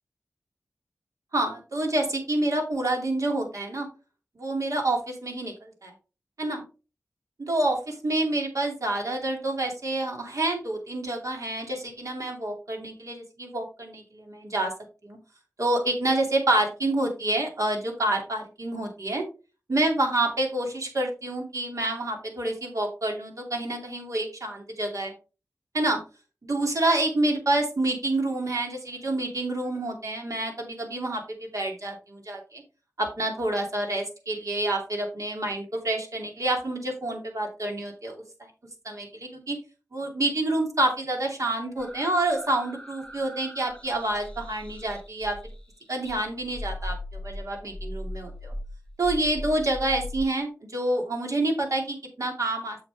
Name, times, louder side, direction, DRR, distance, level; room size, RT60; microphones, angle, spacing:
voice 1, 1.3-3.9 4.4-5.9 6.4-6.6 7.4-14.7 15.0-15.2 15.6-19.2 19.7-25.1 25.7-26.0 26.4-32.6 33.0-38.5 38.8-39.6 39.9-45.4 45.9-47.0 47.2-48.5 49.0-52.8, right 2 dB, 65° right, 2 dB, 2.8 m, -28 dB
sound 1, 41.8-45.7 46.1-50.2, left 1 dB, 15° left, 1.4 m, -39 dB
7.3 x 7.2 x 3.5 m, 0.33 s
cardioid pair, 50°, 6 cm